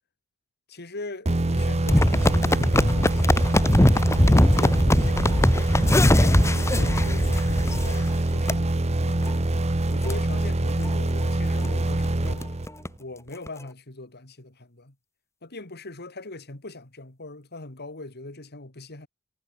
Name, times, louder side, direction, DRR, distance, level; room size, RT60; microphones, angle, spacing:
voice 1, 0.7-5.7 6.2-9.4 9.9-12.5 13.0-14.9 15.4-19.1, left 2 dB, 50° left, 2.6 m, -40 dB
sound 1, 1.3-13.0, right 1 dB, 30° right, 1.0 m, -25 dB
sound 2, 1.9-8.1 8.5-8.6 9.1-9.3 9.7-9.8 10.0-10.1 10.7-10.9 11.3-11.4 11.6-11.7 12.0-12.9 13.5-13.6, left 1 dB, 15° left, 1.0 m, -21 dB
head